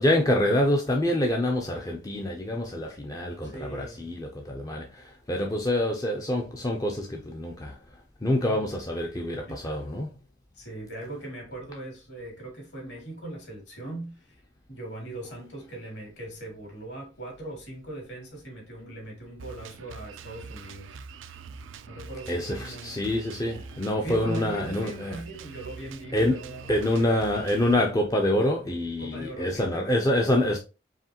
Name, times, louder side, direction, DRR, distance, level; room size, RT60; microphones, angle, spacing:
voice 1, 0.0-7.8 8.2-10.1 22.3-25.2 26.1-30.6, left 1 dB, 20° left, 0.5 m, -26 dB
voice 2, 3.4-4.1 9.1-9.7 10.5-14.4 14.7-21.0 21.9-23.0 24.0-27.1 29.0-29.7, right 2 dB, 65° left, 2.4 m, -40 dB
Drum kit, 19.4-27.7, right 5 dB, 75° right, 0.4 m, -44 dB
4.9 x 3.1 x 2.8 m
head